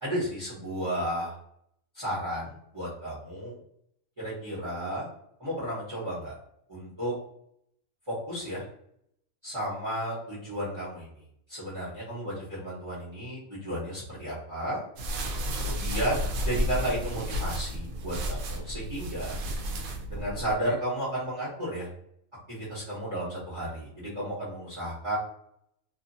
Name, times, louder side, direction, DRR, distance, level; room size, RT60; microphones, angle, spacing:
voice 1, 0.0-1.4 1.9-3.6 4.2-5.1 5.4-6.3 6.7-7.1 8.1-8.6 9.4-11.1 11.5-14.8 15.5-19.4 20.1-21.9 22.5-25.2, right 1 dB, 20° right, -10 dB, 1.1 m, -33 dB
sound 1, 15.0-20.5, equal, 85° right, 1.0 m, -32 dB
2.8 x 2.5 x 2.6 m, 0.71 s
omnidirectional pair, 1.4 m